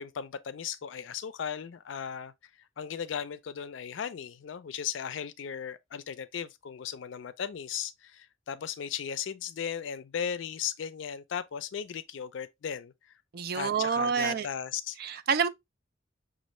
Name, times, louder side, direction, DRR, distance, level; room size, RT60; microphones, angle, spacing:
voice 1, 0.0-2.3 2.8-12.9 13.5-15.0, left 8 dB, 75° left, 0.4 m, -36 dB
voice 2, 13.3-14.5 15.0-15.5, right 6 dB, 50° right, 0.4 m, -28 dB
6.2 x 2.4 x 3.0 m
head